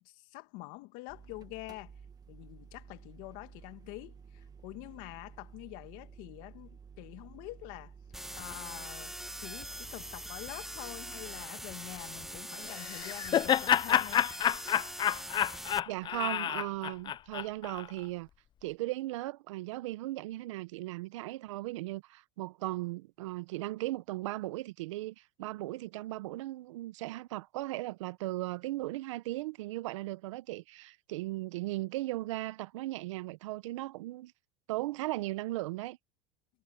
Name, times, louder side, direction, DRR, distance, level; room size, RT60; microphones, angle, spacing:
voice 1, 0.0-1.9 2.3-7.9 8.3-14.2, left 22 dB, 65° left, 2.0 m, -46 dB
sound 1, 1.1-11.5, right 6 dB, 25° right, 1.6 m, -53 dB
sound 2, 8.1-15.8, right 1 dB, ahead, 1.5 m, -43 dB
Laughter, 12.7-17.9, left 10 dB, 30° left, 0.4 m, -29 dB
voice 2, 15.9-18.3 18.6-34.3 34.7-36.0, right 18 dB, 80° right, 0.9 m, -37 dB
supercardioid pair, 105°, 16 cm